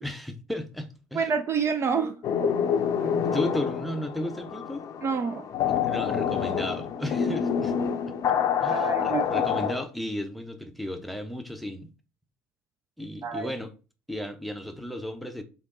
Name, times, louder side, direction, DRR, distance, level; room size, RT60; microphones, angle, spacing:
voice 1, 0.0-1.3 1.9-2.2 3.0-4.9 5.7-7.7 8.1-8.2 8.6-11.9 13.0-13.7 14.1-15.4, equal, ahead, 0.7 m, -34 dB
voice 2, 1.1-2.1 5.0-5.5 8.7-9.5 13.2-13.5, right 5 dB, 35° right, 0.4 m, -28 dB
sound 1, 2.2-9.8, left 8 dB, 45° left, 0.5 m, -27 dB
3.6 x 2.8 x 3.8 m
hypercardioid pair, 65°, 8 cm